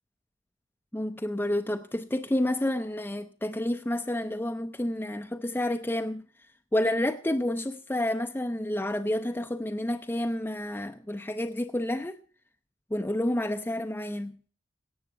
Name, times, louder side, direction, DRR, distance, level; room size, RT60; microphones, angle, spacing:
voice 1, 0.9-6.2 6.7-12.2 12.9-14.4, left 1 dB, 10° left, 0.5 m, -29 dB
17.5 x 7.1 x 6.6 m
head